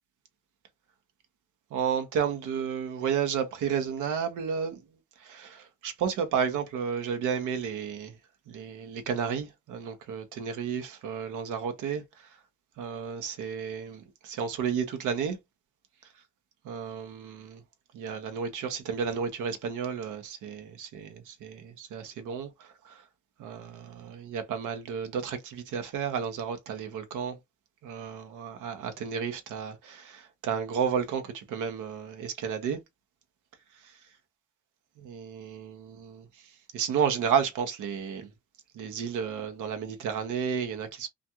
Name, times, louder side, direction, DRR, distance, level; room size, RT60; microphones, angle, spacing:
voice 1, 1.7-4.8 5.2-8.1 8.5-12.3 12.8-15.4 16.7-17.6 17.9-23.0 23.4-27.4 27.8-32.8 33.8-34.0 35.0-36.2 36.7-38.3 38.7-41.1, right 7 dB, 80° right, 0.8 m, -32 dB
2.4 x 2.3 x 2.8 m
cardioid pair, 90°, 30 cm